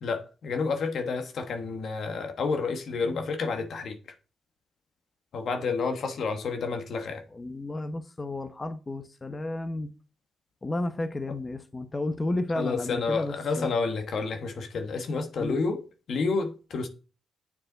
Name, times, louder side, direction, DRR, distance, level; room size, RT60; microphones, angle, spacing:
voice 1, 0.0-4.0 5.3-7.2 12.5-16.9, left 4 dB, 65° left, 1.4 m, -30 dB
voice 2, 7.3-9.9 10.6-13.7 15.4-15.6, left 2 dB, 25° left, 0.9 m, -32 dB
8.7 x 6.6 x 4.0 m
cardioid pair, 65°, 0 cm